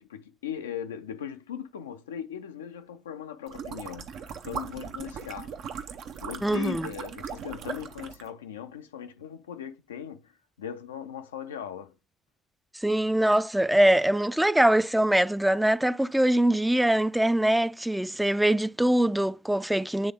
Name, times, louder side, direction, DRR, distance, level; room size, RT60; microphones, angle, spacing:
voice 1, 0.0-5.5 6.2-10.3 10.6-12.0, left 9 dB, 85° left, 0.4 m, -39 dB
sound 1, 3.5-8.3, right 7 dB, 65° right, 0.6 m, -39 dB
voice 2, 6.4-6.9 12.8-20.1, right 1 dB, 5° right, 0.3 m, -23 dB
8.6 x 3.4 x 3.5 m
figure-of-eight pair, 45°, 0 cm